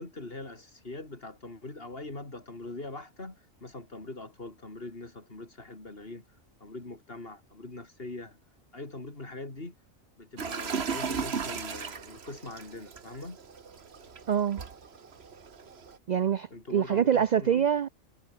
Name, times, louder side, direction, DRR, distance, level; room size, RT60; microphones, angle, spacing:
voice 1, 0.0-6.2 6.6-8.4 8.7-9.7 10.2-13.4 16.5-17.7, left 2 dB, 45° left, 3.9 m, -42 dB
sound 1, 10.4-16.0, right 6 dB, 55° right, 1.6 m, -36 dB
voice 2, 14.3-14.6 16.1-17.9, right 8 dB, 75° right, 0.4 m, -25 dB
omnidirectional pair, 1.3 m